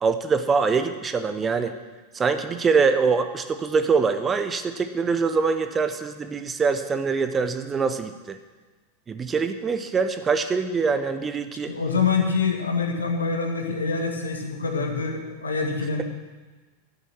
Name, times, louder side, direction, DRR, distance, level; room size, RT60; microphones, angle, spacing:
voice 1, 0.0-1.7 2.1-8.4 9.1-11.7, right 5 dB, 20° right, 9 dB, 0.8 m, -24 dB
voice 2, 11.7-16.0, left 5 dB, 75° left, 3 dB, 1.7 m, -25 dB
11.5 x 9.3 x 6.1 m, 1.3 s
figure-of-eight pair, 90°, 0 cm